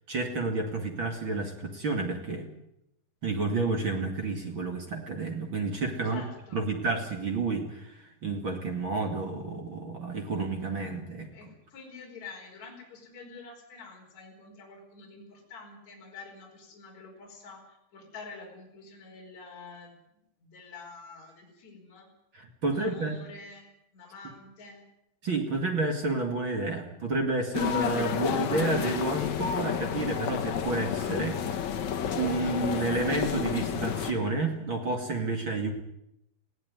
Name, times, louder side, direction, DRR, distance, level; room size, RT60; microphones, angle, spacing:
voice 1, 0.1-2.5 3.2-6.2 6.5-11.3 22.3-23.1 25.2-31.7 32.2-35.7, right 3 dB, 40° right, 3 dB, 2.0 m, -30 dB
voice 2, 6.0-6.6 11.3-22.1 22.7-24.8, left 4 dB, 40° left, 0 dB, 5.8 m, -47 dB
sound 1, 27.5-34.1, left 8 dB, 60° left, 1.9 m, -30 dB
20.0 x 16.5 x 9.6 m, 0.82 s
omnidirectional pair, 5.4 m